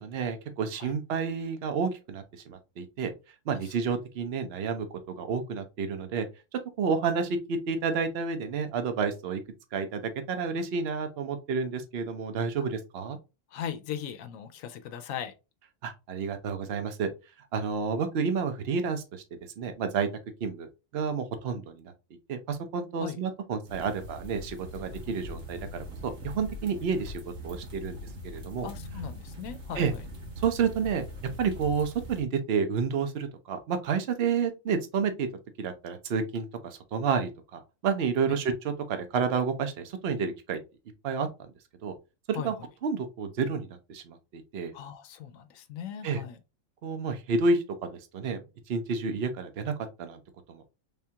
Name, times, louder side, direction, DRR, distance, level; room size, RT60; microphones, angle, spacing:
voice 1, 0.0-3.1 3.5-4.9 5.2-6.3 6.8-9.4 9.7-13.2 15.8-17.1 17.5-19.2 19.6-20.1 20.4-21.9 22.3-28.0 28.2-28.7 29.8-29.9 30.4-31.0 31.4-35.3 35.6-40.6 41.0-41.5 41.8-41.9 42.3-42.5 42.8-44.7 46.0-46.2 46.8-48.4 48.7-49.7 50.0-50.2 50.5-50.6, right 5 dB, 55° right, 0.9 m, -30 dB
voice 2, 13.5-15.3 23.0-23.2 28.6-30.0 42.3-42.5 44.7-46.4, left 9 dB, 80° left, 1.0 m, -38 dB
sound 1, 23.7-32.2, left 1 dB, 85° right, 1.6 m, -41 dB
3.5 x 3.5 x 2.8 m
omnidirectional pair, 1.4 m